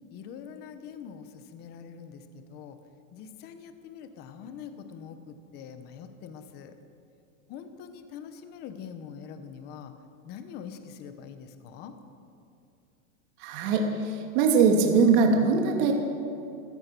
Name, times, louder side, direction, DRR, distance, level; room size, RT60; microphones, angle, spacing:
voice 1, 0.1-2.8 3.1-6.7 7.5-9.9 10.2-11.9, left 7 dB, 25° left, 8 dB, 1.1 m, -44 dB
voice 2, 13.4-15.9, right 5 dB, 40° right, 2 dB, 2.8 m, -22 dB
27.0 x 16.5 x 6.2 m, 2.5 s
supercardioid pair, 175°, 41 cm